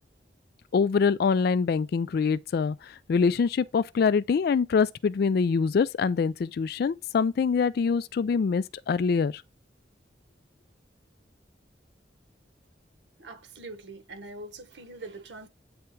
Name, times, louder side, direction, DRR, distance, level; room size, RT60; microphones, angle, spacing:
voice 1, 0.7-9.4, left 5 dB, 60° left, 0.3 m, -24 dB
voice 2, 13.2-15.5, right 2 dB, 90° right, 1.2 m, -43 dB
8.7 x 3.5 x 4.5 m
head